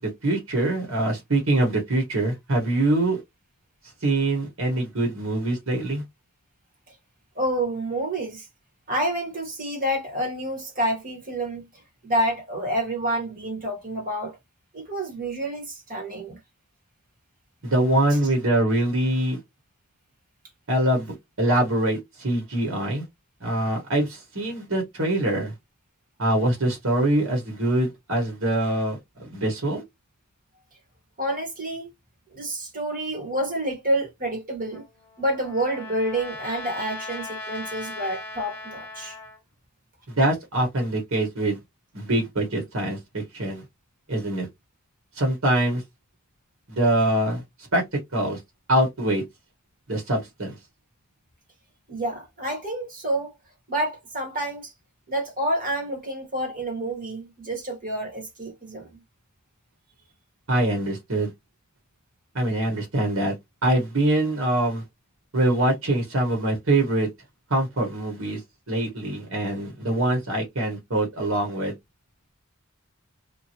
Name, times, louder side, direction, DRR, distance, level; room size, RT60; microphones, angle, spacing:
voice 1, 0.0-3.2 4.0-6.0 17.6-19.4 20.7-23.0 23.4-25.5 26.2-29.0 29.3-29.8 40.1-41.6 41.9-43.6 44.1-44.5 45.2-45.8 46.7-47.4 47.7-47.8 48.1-48.4 48.7-49.2 49.9-50.5 60.5-61.3 62.3-63.3 63.6-64.8 65.3-67.1 67.5-68.4 68.7-71.7, right 1 dB, 70° right, 1.4 m, -24 dB
voice 2, 7.3-8.5 8.9-14.4 14.7-16.4 18.1-18.2 31.2-31.9 32.3-34.8 35.2-39.2 51.9-53.3 53.7-54.7 55.1-59.0, right 1 dB, 40° right, 1.4 m, -28 dB
Trumpet, 34.7-39.4, left 2 dB, 10° left, 0.9 m, -38 dB
2.6 x 2.6 x 2.9 m
head